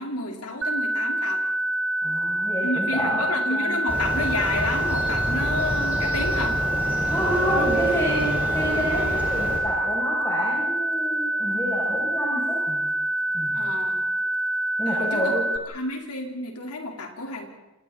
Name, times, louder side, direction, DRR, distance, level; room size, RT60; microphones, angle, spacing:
voice 1, 0.0-1.4 2.6-6.6 7.5-7.7 13.5-14.0 14.9-15.4 15.7-17.5, left 2 dB, 90° left, 1 dB, 4.4 m, -30 dB
sound 1, 0.6-15.6, right 1 dB, 60° right, 1.5 m, -26 dB
voice 2, 2.0-3.8 7.1-12.8 13.3-13.6 14.8-15.4, equal, 15° left, -7 dB, 7.2 m, -29 dB
Motorcycle, 3.9-9.6, right 1 dB, 10° right, 6.5 m, -28 dB
29.5 x 28.0 x 4.3 m, 1.0 s
head